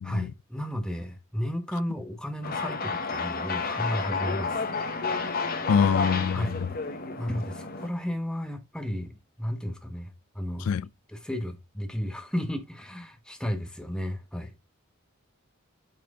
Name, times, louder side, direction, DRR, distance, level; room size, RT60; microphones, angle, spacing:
voice 1, 0.0-4.6 6.3-6.6 7.2-10.8 11.1-14.5, equal, 5° left, 1.0 m, -33 dB
sound 1, 2.4-7.9, left 4 dB, 45° left, 1.1 m, -31 dB
voice 2, 5.7-6.7 10.6-10.9, left 7 dB, 90° left, 0.3 m, -25 dB
8.8 x 4.2 x 3.6 m
head